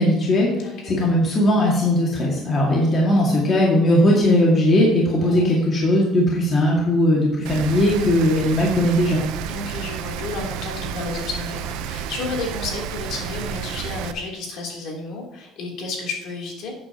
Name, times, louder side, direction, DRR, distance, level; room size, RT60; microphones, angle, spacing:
voice 1, 0.0-9.2, left 1 dB, 30° left, -3 dB, 2.1 m, -18 dB
voice 2, 0.6-0.9 2.9-3.2 5.2-5.5 9.5-16.7, left 3 dB, 60° left, -1 dB, 3.2 m, -32 dB
Rain, 7.5-14.1, right 9 dB, 90° right, 0.7 m, -31 dB
12.0 x 8.7 x 2.9 m, 1.0 s
cardioid pair, 155°, 0 cm